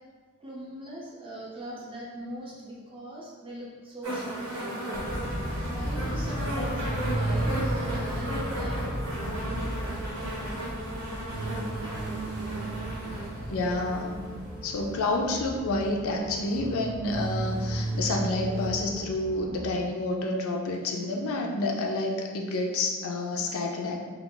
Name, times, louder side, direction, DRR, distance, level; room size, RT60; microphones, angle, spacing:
voice 1, 0.4-5.1 5.7-8.8, right 1 dB, 25° right, -5 dB, 0.7 m, -41 dB
sound 1, 4.0-15.1 16.1-16.2, right 1 dB, 70° right, 0.8 m, -36 dB
sound 2, 4.9-19.8, equal, 20° left, 0.6 m, -36 dB
sound 3, 6.1-9.6 11.3-14.4 16.5-18.7, right 2 dB, 50° right, 0.3 m, -34 dB
voice 2, 13.5-14.2 14.6-24.0, left 2 dB, 65° left, 1 dB, 0.4 m, -29 dB
2.4 x 2.3 x 3.8 m, 1.5 s
head